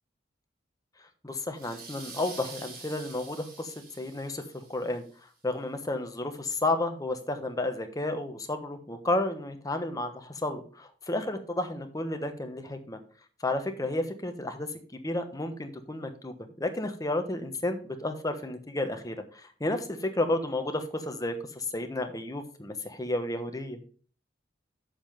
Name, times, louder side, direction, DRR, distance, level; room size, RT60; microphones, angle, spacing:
voice 1, 1.2-5.0 5.4-13.0 13.4-23.8, left 2 dB, 20° left, 6 dB, 1.2 m, -32 dB
sound 1, 1.5-5.0, right 4 dB, 50° right, 2.9 m, -46 dB
7.6 x 7.2 x 5.1 m, 0.42 s
head